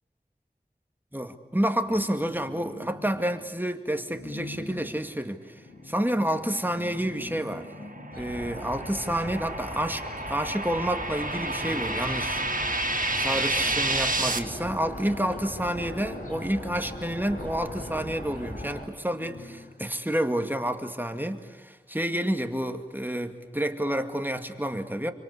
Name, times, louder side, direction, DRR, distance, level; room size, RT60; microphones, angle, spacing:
voice 1, 1.1-5.5 5.9-7.7 8.2-12.4 13.2-25.1, right 1 dB, 10° right, 6 dB, 2.2 m, -29 dB
sound 1, 1.8-3.6 4.1-9.7 10.7-10.8 11.0-19.9, left 2 dB, 85° left, 1.8 m, -45 dB
sound 2, 7.6-14.4, right 2 dB, 55° right, 1.9 m, -30 dB
sound 3, 8.1-18.8, equal, 55° left, 7.6 m, -39 dB
28.0 x 25.0 x 8.4 m, 1.2 s
wide cardioid pair, 40°, 16 cm